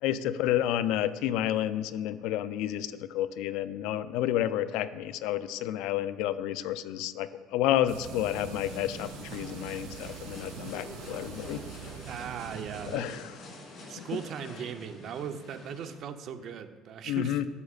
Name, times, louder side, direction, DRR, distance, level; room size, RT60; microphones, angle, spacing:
voice 1, 0.0-11.6 12.9-13.3 14.0-14.1 17.1-17.5, left 12 dB, 85° left, 13 dB, 0.4 m, -30 dB
sound 1, 7.9-12.9, right 11 dB, 85° right, 0.3 m, -44 dB
sound 2, 8.0-15.9, left 2 dB, 50° left, 2.8 m, -46 dB
voice 2, 12.1-13.2 13.9-17.4, right 8 dB, 55° right, 9 dB, 0.7 m, -38 dB
12.5 x 8.1 x 2.4 m, 1.3 s
cardioid pair, 115°, 0 cm